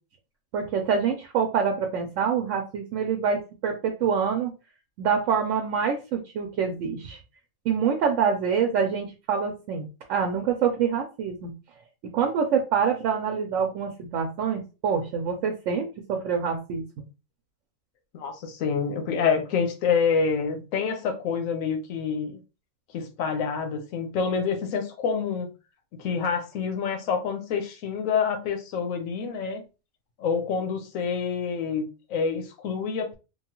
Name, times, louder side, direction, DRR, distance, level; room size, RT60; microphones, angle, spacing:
voice 1, 0.5-4.5 5.0-7.2 7.7-11.5 12.1-16.8, right 6 dB, 75° right, 0.9 m, -26 dB
voice 2, 18.1-22.4 22.9-25.5 25.9-29.6 30.2-33.2, left 6 dB, 85° left, 1.1 m, -27 dB
3.0 x 2.3 x 2.9 m
omnidirectional pair, 1.3 m